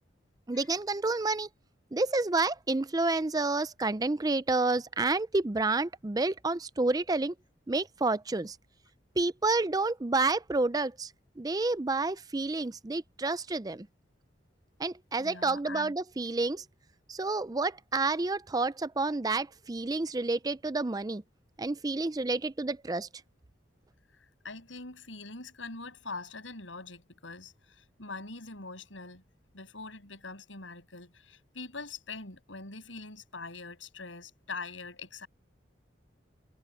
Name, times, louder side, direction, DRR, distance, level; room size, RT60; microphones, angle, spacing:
voice 1, 0.5-1.5 1.9-7.3 7.7-8.6 9.2-11.1 11.4-13.9 14.8-16.6 17.1-21.2 21.6-23.1, right 3 dB, 20° right, 0.4 m, -29 dB
voice 2, 15.2-15.9 24.4-29.2 29.5-35.3, left 3 dB, 90° left, 7.6 m, -43 dB
head